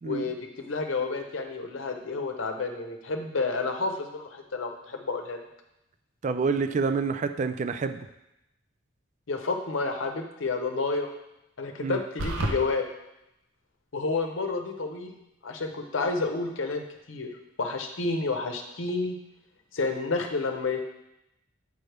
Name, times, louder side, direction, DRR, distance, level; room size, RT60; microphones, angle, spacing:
voice 1, 0.0-5.4 9.3-11.1 11.6-12.8 13.9-15.2 15.4-17.3 17.6-19.2 19.7-20.8, left 3 dB, 75° left, 4 dB, 0.8 m, -30 dB
voice 2, 6.2-8.1 11.8-12.0, right 5 dB, 35° right, 9 dB, 0.3 m, -27 dB
sound 1, 12.2-12.6, right 1 dB, 90° right, 0.9 m, -28 dB
7.7 x 5.2 x 3.4 m, 0.88 s
head